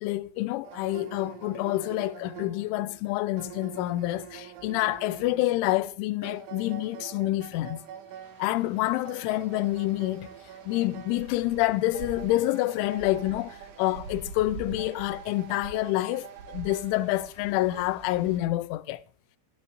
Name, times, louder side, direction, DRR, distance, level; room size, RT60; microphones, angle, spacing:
voice 1, 0.0-7.8 8.4-10.3 10.7-19.0, left 16 dB, 80° left, 3.1 m, -28 dB
sound 1, 0.6-17.8, right 8 dB, 75° right, 3.6 m, -46 dB
sound 2, 8.2-18.4, right 4 dB, 50° right, 3.9 m, -46 dB
22.0 x 8.1 x 2.7 m
omnidirectional pair, 5.9 m